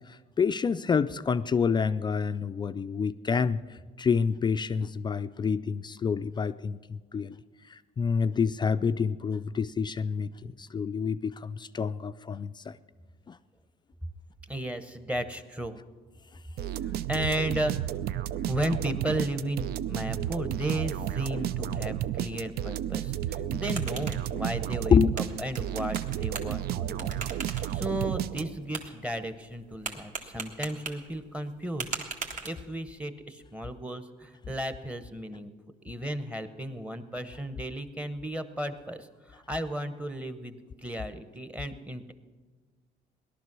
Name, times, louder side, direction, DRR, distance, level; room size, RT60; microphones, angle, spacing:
voice 1, 0.1-7.4 7.7-12.8 13.3-13.4 24.3-24.4 24.9-25.1, left 6 dB, 25° left, 13 dB, 0.4 m, -28 dB
voice 2, 14.5-15.8 16.8-17.9 18.5-25.0 25.4-32.0 32.4-35.5 35.8-42.1, right 1 dB, 10° right, 10 dB, 1.0 m, -34 dB
sound 1, 16.6-28.8, right 12 dB, 65° right, 0.5 m, -32 dB
sound 2, 23.3-33.0, right 4 dB, 50° right, 1.9 m, -42 dB
17.5 x 11.5 x 6.1 m, 1.4 s
cardioid pair, 110°, 17 cm